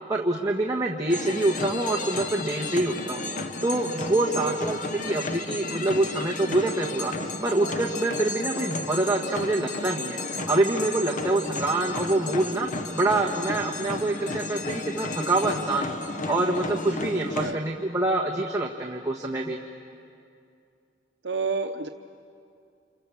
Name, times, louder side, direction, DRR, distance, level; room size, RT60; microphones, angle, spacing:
voice 1, 0.1-3.2 3.6-4.8 5.0-7.1 7.4-10.2 10.5-12.7 12.9-16.0 16.3-19.6, right 2 dB, 20° right, -1 dB, 1.5 m, -26 dB
sound 1, 1.1-17.5, left 2 dB, 45° left, 1.1 m, -33 dB
voice 2, 21.2-21.9, right 4 dB, 70° right, 5 dB, 0.9 m, -29 dB
29.5 x 28.0 x 7.2 m, 2.4 s
head